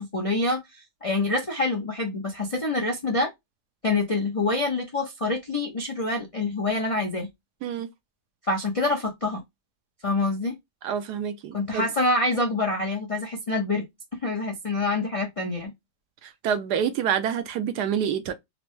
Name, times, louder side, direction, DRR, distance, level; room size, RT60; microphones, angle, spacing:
voice 1, 0.0-3.3 3.8-7.3 8.4-9.4 10.0-10.6 11.5-13.9 14.2-15.7, left 2 dB, 45° left, 0.4 m, -26 dB
voice 2, 10.8-11.8 16.2-18.3, right 8 dB, 75° right, 1.1 m, -27 dB
4.2 x 2.1 x 3.0 m
omnidirectional pair, 1.8 m